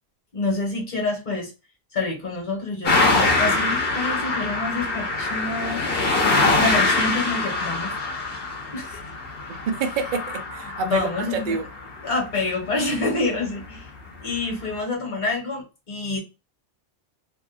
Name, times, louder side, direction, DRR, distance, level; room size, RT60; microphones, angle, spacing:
voice 1, 0.3-1.5 1.9-7.9 8.7-9.1 10.8-11.6 12.0-13.9 14.2-16.2, left 3 dB, 40° left, 1.3 m, -27 dB
sound 1, 2.8-12.1 13.4-13.5 14.3-14.4, left 3 dB, 60° left, 1.0 m, -24 dB
voice 2, 9.5-11.7, right 5 dB, 60° right, 0.5 m, -27 dB
2.7 x 2.4 x 2.4 m
omnidirectional pair, 1.2 m